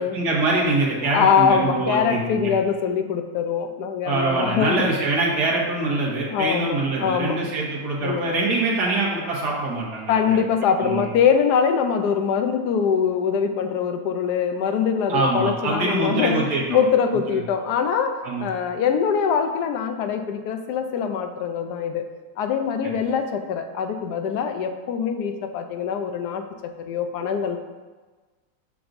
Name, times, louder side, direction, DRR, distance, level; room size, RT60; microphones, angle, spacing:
voice 1, 0.1-2.5 4.1-10.4 10.8-11.1 15.1-16.8 18.2-18.5, right 2 dB, 85° right, -4 dB, 1.8 m, -24 dB
voice 2, 1.1-4.9 6.3-7.5 8.0-8.4 10.1-16.4 16.7-22.0 22.4-27.6, left 7 dB, 85° left, 7 dB, 1.2 m, -23 dB
6.8 x 6.0 x 2.6 m, 1.3 s
omnidirectional pair, 1.7 m